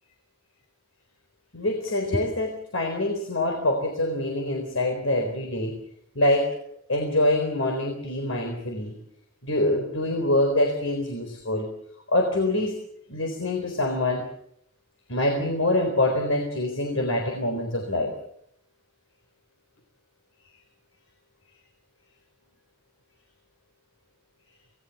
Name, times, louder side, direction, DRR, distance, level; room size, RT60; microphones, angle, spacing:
voice 1, 1.5-5.8 6.2-6.6 6.9-9.0 9.4-11.7 12.1-12.8 13.1-14.3 15.1-18.2, left 1 dB, 85° left, 5 dB, 3.9 m, -25 dB
27.0 x 19.0 x 7.0 m, 0.69 s
head